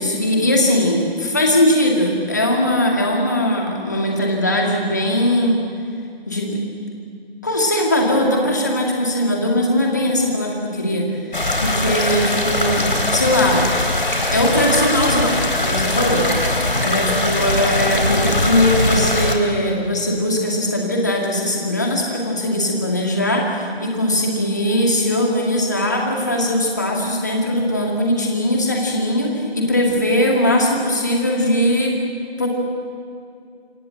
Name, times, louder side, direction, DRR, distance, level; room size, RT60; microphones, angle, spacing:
voice 1, 0.0-5.6 6.3-6.6 7.4-11.1 11.6-12.8 13.1-13.7 14.0-31.9 32.4-32.5, left 1 dB, 15° left, 0 dB, 2.2 m, -20 dB
sound 1, 11.3-19.3, left 2 dB, 50° left, 3.8 m, -20 dB
27.0 x 25.0 x 7.8 m, 2.4 s
figure-of-eight pair, 175°, 32 cm